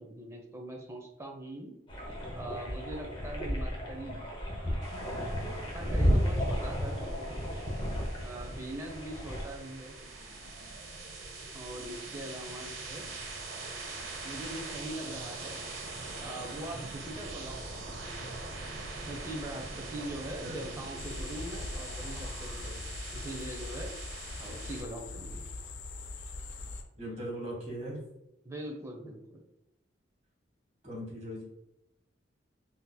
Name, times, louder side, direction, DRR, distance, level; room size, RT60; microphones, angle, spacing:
voice 1, 0.0-1.7 2.3-4.2 4.6-5.2 5.7-7.1 8.2-10.0 11.5-13.1 14.2-15.6 16.2-18.3 19.1-24.0 24.4-25.5 28.4-29.4, right 1 dB, 15° right, 1 dB, 0.5 m, -42 dB
sound 1, 1.9-9.4, equal, 30° left, 0.7 m, -32 dB
sound 2, 4.8-24.8, right 3 dB, 85° right, 0.7 m, -43 dB
sound 3, 21.0-26.8, left 2 dB, 80° left, 0.4 m, -41 dB
voice 2, 27.0-28.0 30.8-31.4, equal, 40° right, -3 dB, 1.3 m, -39 dB
3.8 x 2.8 x 2.2 m, 0.90 s
head